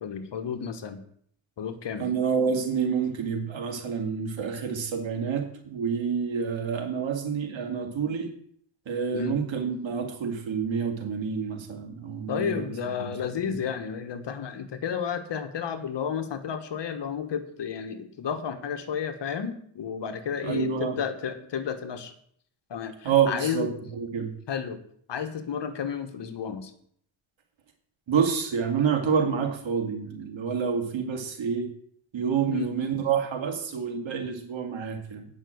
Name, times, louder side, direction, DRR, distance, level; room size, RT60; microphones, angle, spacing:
voice 1, 0.0-1.0 1.6-2.1 9.1-9.4 12.3-22.1 22.7-23.7 24.5-24.8 25.1-26.7 32.5-32.7, left 7 dB, 60° left, 9 dB, 1.3 m, -32 dB
voice 2, 2.0-8.3 8.9-12.7 13.0-13.1 13.4-13.5 20.4-21.0 23.0-24.3 28.1-31.7 32.1-35.3, right 6 dB, 65° right, 3 dB, 2.3 m, -28 dB
9.0 x 5.8 x 7.8 m, 0.63 s
cardioid pair, 90°, 49 cm